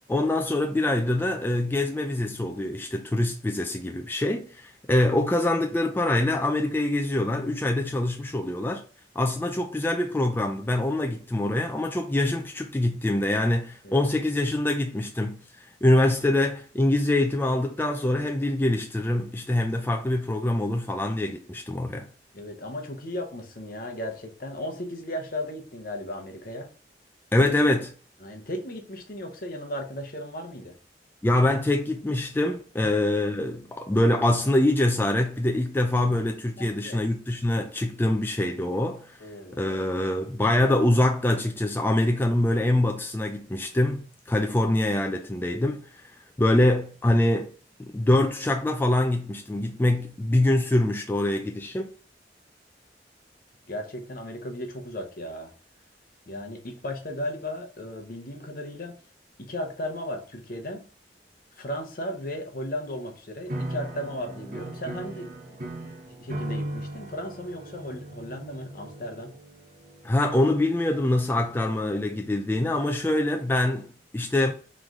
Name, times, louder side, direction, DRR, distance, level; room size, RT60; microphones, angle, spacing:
voice 1, 0.1-8.8 9.2-22.1 27.3-27.9 31.2-39.2 39.5-46.1 46.4-47.5 47.8-51.9 70.0-74.5, left 1 dB, 10° left, 0.3 m, -24 dB
voice 2, 22.3-26.7 28.2-30.8 36.6-37.0 39.2-39.6 53.7-55.5 56.3-59.0 59.4-60.9 61.6-65.6 66.1-69.4, left 1 dB, 55° left, 0.8 m, -35 dB
sound 1, 63.5-71.8, right 1 dB, 50° right, 0.9 m, -38 dB
3.9 x 3.1 x 3.6 m
head